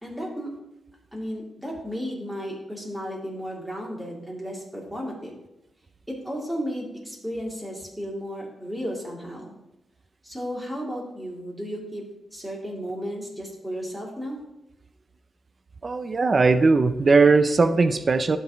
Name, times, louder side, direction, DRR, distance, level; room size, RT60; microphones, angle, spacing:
voice 1, 0.0-0.5 1.1-5.4 6.1-9.5 10.2-12.0 12.3-14.4, equal, ahead, -4 dB, 2.5 m, -34 dB
voice 2, 15.8-18.4, right 4 dB, 40° right, 10 dB, 0.5 m, -19 dB
11.5 x 4.0 x 3.5 m, 0.89 s
cardioid pair, 85°, 0 cm